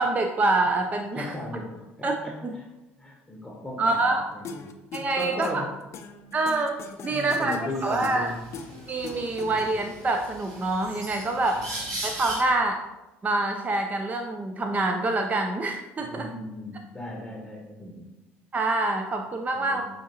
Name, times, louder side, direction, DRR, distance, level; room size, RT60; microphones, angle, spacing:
voice 1, 0.0-1.3 2.0-2.2 2.4-2.5 3.8-4.2 4.9-5.7 6.3-8.3 8.9-11.6 12.0-12.8 13.2-16.3 18.5-19.8, right 2 dB, 25° right, 4 dB, 0.4 m, -26 dB
voice 2, 1.2-1.7 2.0-2.7 3.0-4.0 4.3-4.7 5.1-5.7 7.1-8.4 9.3-9.7 11.5-12.0 16.0-18.0 19.5-19.8, left 1 dB, 10° left, -1 dB, 0.8 m, -37 dB
sound 1, 4.4-10.0, left 5 dB, 45° left, 0.5 m, -40 dB
sound 2, 7.3-7.4 7.7-12.4, right 2 dB, 60° right, 1.2 m, -39 dB
5.7 x 2.6 x 2.7 m, 1.0 s
hypercardioid pair, 65°, 6 cm